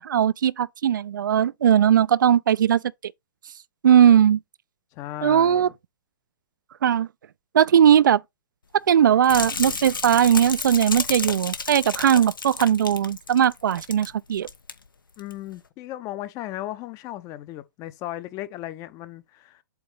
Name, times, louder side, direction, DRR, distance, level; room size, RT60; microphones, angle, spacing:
voice 1, 0.0-3.1 3.8-4.4 5.2-5.7 6.8-7.1 7.5-8.2 8.7-14.5, right 9 dB, 70° right, 0.5 m, -19 dB
voice 2, 4.9-5.7 15.2-19.6, left 14 dB, 30° left, 0.7 m, -36 dB
sound 1, 9.2-14.1 14.4-14.7 15.2-15.3, left 5 dB, 85° left, 1.2 m, -32 dB
8.0 x 2.7 x 5.0 m
hypercardioid pair, 120°, 11 cm